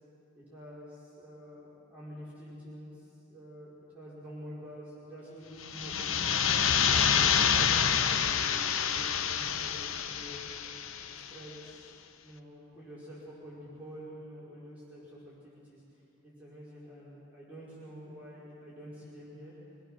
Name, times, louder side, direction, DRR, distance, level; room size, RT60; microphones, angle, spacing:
voice 1, 0.5-6.3 6.8-10.4 11.1-15.8 16.2-19.5, equal, 5° right, -10 dB, 5.0 m, -48 dB
sound 1, 5.6-11.3, left 7 dB, 80° left, 0.8 m, -27 dB
25.5 x 19.0 x 6.4 m, 2.8 s
head